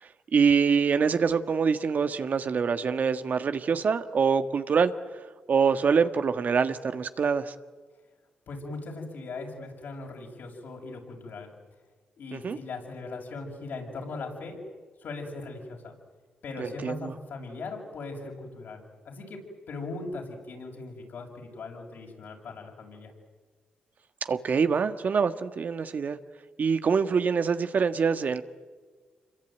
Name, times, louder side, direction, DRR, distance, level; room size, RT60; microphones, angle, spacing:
voice 1, 0.0-7.5 12.3-12.6 16.6-17.1 24.3-26.2 26.6-28.4, right 6 dB, 60° right, 9 dB, 1.6 m, -25 dB
voice 2, 8.5-11.5 12.2-14.6 15.0-15.9 16.4-23.1, left 3 dB, 70° left, 1 dB, 7.4 m, -39 dB
27.0 x 23.0 x 9.3 m, 1.4 s
supercardioid pair, 55°, 3 cm